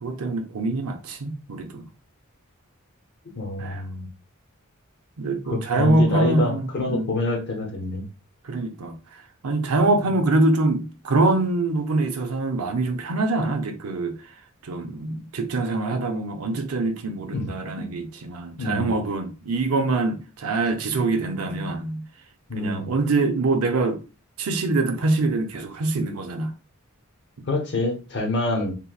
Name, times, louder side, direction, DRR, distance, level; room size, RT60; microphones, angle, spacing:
voice 1, 0.0-1.8 3.6-3.8 5.2-6.6 6.9-7.1 8.4-8.9 9.4-14.2 14.6-22.1 22.6-24.0 24.4-26.5, right 2 dB, 90° right, 0.6 m, -24 dB
voice 2, 3.3-4.1 5.5-8.0 17.3-17.5 17.8-17.9 18.6-18.9 22.5-22.9 26.1-26.2 27.5-28.7, left 2 dB, 55° left, 0.8 m, -26 dB
2.9 x 2.7 x 2.2 m
head